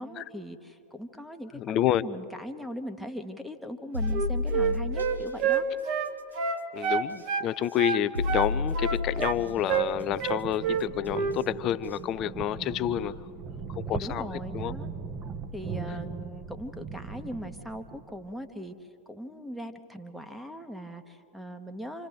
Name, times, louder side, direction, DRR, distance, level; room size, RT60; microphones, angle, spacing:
voice 1, 0.0-5.7 13.9-14.9 15.5-18.7 19.1-22.1, equal, ahead, 7 dB, 1.4 m, -40 dB
voice 2, 1.6-2.0 6.7-13.2 13.8-14.7, left 11 dB, 35° left, 16 dB, 0.6 m, -29 dB
sound 1, 3.9-5.2 7.1-7.2 8.1-9.5 11.3-11.4 11.9-12.0, left 3 dB, 80° right, 1.0 m, -30 dB
Wind instrument woodwind instrument, 4.0-7.5 7.8-9.4 9.7-9.9 10.2-10.9 11.1-11.4, right 7 dB, 40° right, 1.3 m, -28 dB
sound 2, 9.0-18.3, right 5 dB, 25° right, 1.3 m, -39 dB
28.0 x 27.0 x 3.6 m, 2.5 s
figure-of-eight pair, 90°, 0 cm